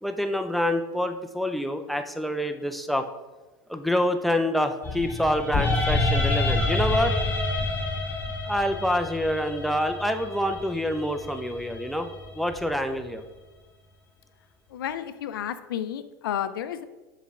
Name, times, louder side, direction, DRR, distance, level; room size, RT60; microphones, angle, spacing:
voice 1, 0.0-3.1 3.7-7.1 8.5-12.1 12.3-13.2, left 1 dB, ahead, 6 dB, 0.4 m, -26 dB
sound 1, 4.8-13.0, left 2 dB, 15° left, 1.8 m, -28 dB
voice 2, 14.7-16.8, left 10 dB, 90° left, 12 dB, 0.4 m, -31 dB
6.4 x 4.1 x 3.6 m, 1.2 s
supercardioid pair, 110°, 11 cm